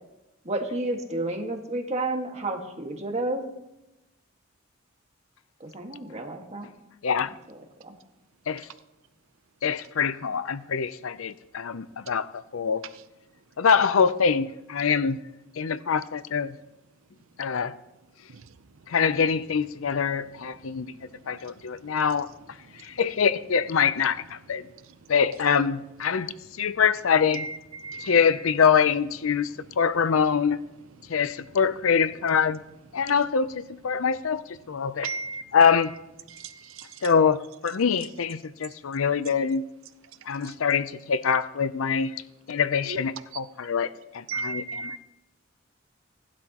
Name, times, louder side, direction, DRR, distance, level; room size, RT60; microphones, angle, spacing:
voice 1, 0.5-3.5 5.6-6.7 7.8-7.9, right 2 dB, 35° right, 1.7 m, -31 dB
voice 2, 9.6-12.8 13.6-15.2 15.6-16.6 17.4-17.7 18.9-20.9 21.3-22.3 22.8-24.6 25.1-26.3 26.6-27.5 28.0-29.5 29.8-30.6 31.1-32.6 32.9-35.1 35.5-35.9 37.0-39.6 40.3-42.1 42.5-43.9 44.1-44.9, left 6 dB, 85° left, 0.6 m, -24 dB
voice 3, 27.3-28.1 35.0-35.4 36.3-36.9 42.9-43.0 44.3-45.0, right 3 dB, 75° right, 0.7 m, -34 dB
17.5 x 12.0 x 3.0 m
head